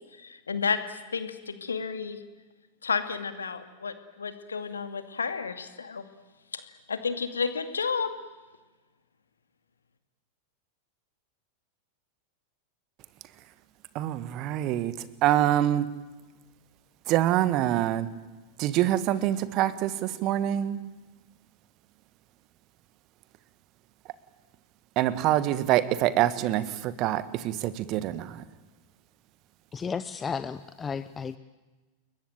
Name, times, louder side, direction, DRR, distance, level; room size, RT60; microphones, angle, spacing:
voice 1, 0.2-2.2 2.8-6.0 6.5-6.6 6.9-8.1, left 5 dB, 75° left, 10 dB, 2.3 m, -31 dB
voice 2, 14.0-15.9 17.1-18.1 18.6-20.8 25.0-28.4, right 13 dB, 40° right, 15 dB, 1.7 m, -25 dB
voice 3, 29.7-31.4, left 6 dB, 20° left, 13 dB, 0.8 m, -33 dB
29.0 x 22.0 x 9.2 m, 1.2 s
figure-of-eight pair, 90°, 0 cm